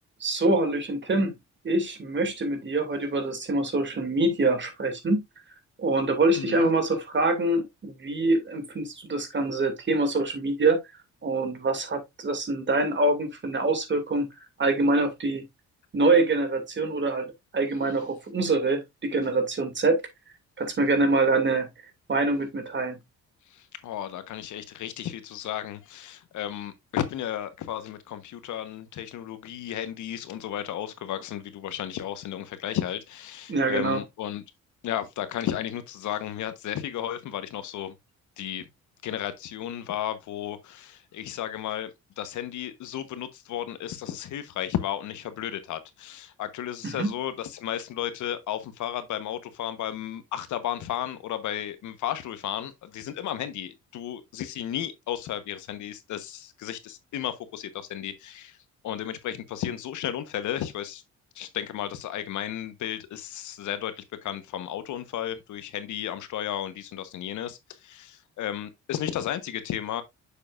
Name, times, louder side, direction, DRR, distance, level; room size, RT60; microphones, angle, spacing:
voice 1, 0.2-1.3 1.6-5.2 5.8-10.8 11.2-14.2 14.6-15.4 15.9-20.0 20.6-21.7 22.1-23.0 33.5-34.0 46.8-47.1, right 2 dB, 40° right, 2.3 m, -25 dB
voice 2, 6.3-6.7 23.5-34.4 34.8-37.9 38.4-38.6 39.0-41.9 42.2-58.6 58.8-61.0 61.3-70.0, left 11 dB, 75° left, 1.0 m, -33 dB
6.8 x 6.8 x 2.4 m
cardioid pair, 90°, 30 cm